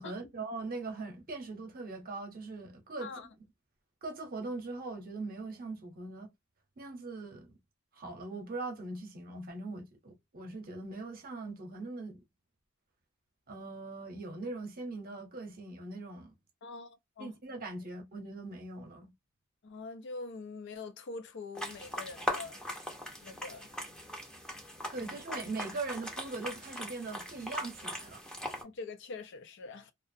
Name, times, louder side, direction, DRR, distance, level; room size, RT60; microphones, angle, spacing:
voice 1, 0.0-3.1 4.0-6.3 6.8-7.5 7.9-12.2 13.5-16.3 17.2-19.1 24.9-28.2, right 3 dB, 45° right, 0.8 m, -41 dB
voice 2, 16.6-17.3 19.6-22.6 23.2-23.7 28.6-29.9, left 3 dB, 60° left, 0.5 m, -44 dB
sound 1, 21.5-28.6, left 1 dB, 5° left, 0.6 m, -40 dB
2.4 x 2.0 x 2.6 m
head